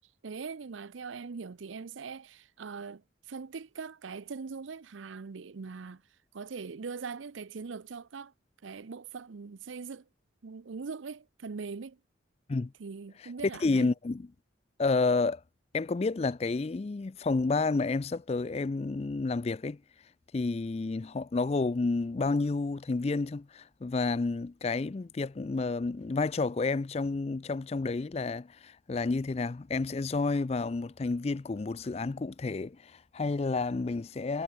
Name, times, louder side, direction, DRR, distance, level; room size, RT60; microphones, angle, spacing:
voice 1, 0.2-6.0 6.3-8.3 8.6-10.1 10.4-12.0 12.8-13.9, right 5 dB, 85° right, 0.6 m, -41 dB
voice 2, 13.6-14.3 14.8-15.4 15.7-19.8 20.3-34.4, left 3 dB, 35° left, 0.4 m, -30 dB
head